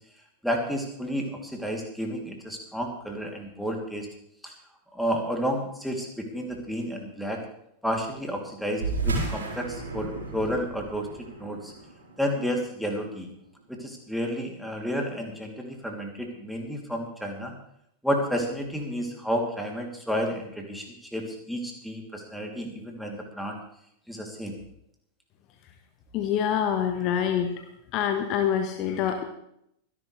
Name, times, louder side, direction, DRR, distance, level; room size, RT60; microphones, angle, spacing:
voice 1, 0.4-4.1 4.4-4.5 4.9-7.4 7.8-11.7 12.2-13.3 13.7-17.5 18.0-23.6 24.1-24.6, equal, ahead, 1 dB, 3.0 m, -31 dB
sound 1, 8.7-13.6, right 3 dB, 70° right, 4.7 m, -33 dB
voice 2, 26.1-27.6 27.9-29.2, left 9 dB, 40° left, 7 dB, 1.4 m, -26 dB
24.5 x 11.0 x 3.4 m, 0.75 s
figure-of-eight pair, 90°, 0 cm